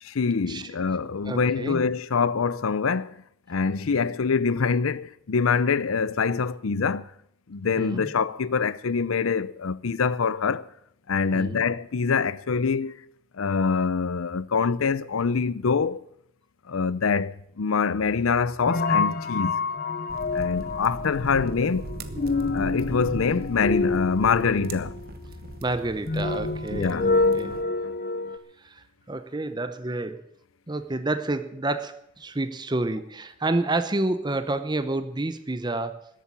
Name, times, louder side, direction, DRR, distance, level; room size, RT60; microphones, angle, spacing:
voice 1, 0.0-3.2 3.5-7.1 7.5-10.7 11.1-13.0 13.4-16.0 16.7-19.6 20.3-21.9 22.5-25.0 26.7-27.1, left 5 dB, 80° left, 0.6 m, -25 dB
voice 2, 1.2-1.8 7.8-8.1 11.3-11.6 25.6-27.6 28.6-30.3 30.7-36.0, right 2 dB, 20° right, 0.7 m, -29 dB
sound 1, 17.9-28.4, left 3 dB, 45° left, 0.9 m, -28 dB
sound 2, 20.1-27.6, right 2 dB, 45° right, 1.0 m, -38 dB
13.5 x 8.4 x 9.8 m
head